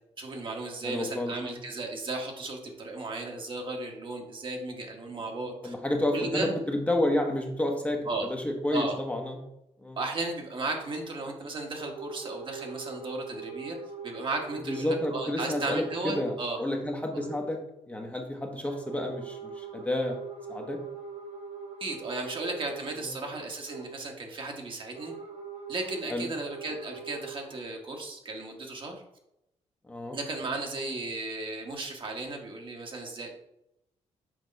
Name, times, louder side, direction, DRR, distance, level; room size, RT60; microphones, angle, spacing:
voice 1, 0.2-5.7 6.1-6.5 8.1-8.3 8.7-9.0 10.0-13.8 14.0-16.6 21.8-25.1 25.7-29.0 30.1-33.4, right 3 dB, 45° right, 2 dB, 1.2 m, -35 dB
voice 2, 0.8-1.6 5.6-8.0 8.3-9.4 9.8-10.0 14.7-17.6 17.9-20.2 20.5-20.8 23.0-23.1 26.1-26.3 29.9-30.2, left 1 dB, 10° left, 2 dB, 0.8 m, -30 dB
sound 1, 11.7-16.8 17.1-17.5 18.7-24.0 24.9-27.6, right 5 dB, 90° right, 2.1 m, -42 dB
6.2 x 2.9 x 5.2 m, 0.83 s
cardioid pair, 115°, 12 cm